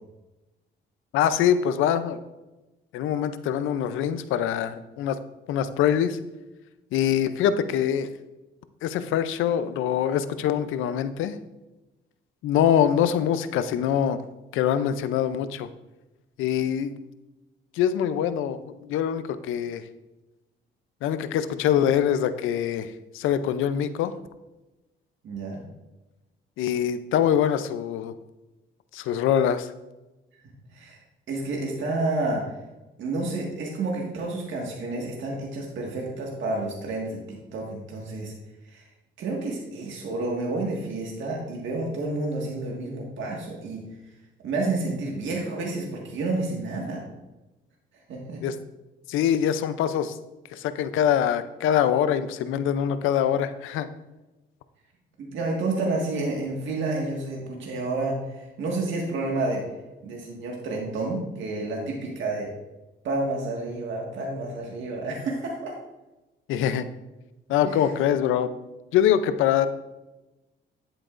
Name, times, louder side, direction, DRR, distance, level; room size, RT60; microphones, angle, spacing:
voice 1, 1.1-2.2 2.9-5.2 5.5-6.2 6.9-8.1 8.8-11.3 12.4-14.2 14.5-15.7 16.4-16.9 17.8-19.8 21.0-24.1 26.6-28.1 28.9-29.7 48.4-48.5 49.1-50.2 50.5-53.9 66.5-66.9 67.5-68.5 68.9-69.7, left 9 dB, 90° left, 12 dB, 0.6 m, -24 dB
voice 2, 25.2-25.6 30.7-31.0 31.3-32.4 33.0-38.3 38.6-38.8 39.2-43.8 44.4-47.0 48.1-48.4 55.2-59.6 60.0-62.5 63.0-65.7 67.6-67.9, right 2 dB, 70° right, -2 dB, 1.8 m, -30 dB
10.0 x 8.7 x 2.5 m, 1.0 s
cardioid pair, 90°, 20 cm